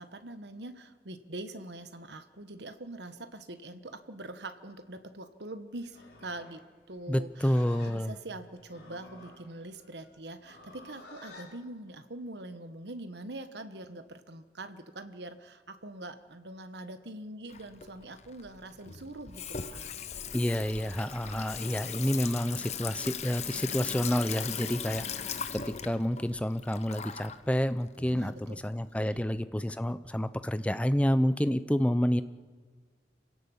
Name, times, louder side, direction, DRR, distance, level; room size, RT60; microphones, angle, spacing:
voice 1, 0.0-20.0 28.1-28.6 29.0-29.2, right 2 dB, 70° right, 10 dB, 1.3 m, -44 dB
Livestock farm animals working animals, 5.8-11.5, left 2 dB, 60° left, 5.6 m, -52 dB
voice 2, 7.1-8.1 20.3-32.2, equal, 5° left, 13 dB, 0.6 m, -29 dB
Water tap faucet / Sink (filling or washing), 17.5-29.2, left 7 dB, 40° left, 1.0 m, -39 dB
27.0 x 17.0 x 7.2 m, 1.4 s
head